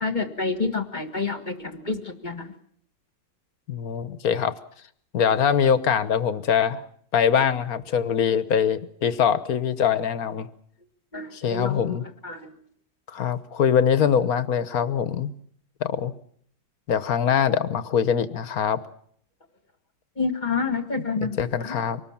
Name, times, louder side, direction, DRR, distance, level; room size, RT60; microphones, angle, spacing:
voice 1, 0.0-2.5 11.1-12.5 20.2-21.8, left 4 dB, 25° left, 9 dB, 1.7 m, -29 dB
voice 2, 3.7-4.5 5.1-6.8 7.1-10.5 11.3-12.0 13.1-15.3 15.8-16.1 16.9-18.8 21.2-22.0, left 8 dB, 60° left, 14 dB, 1.5 m, -23 dB
24.5 x 19.5 x 7.2 m, 0.64 s
omnidirectional pair, 1.9 m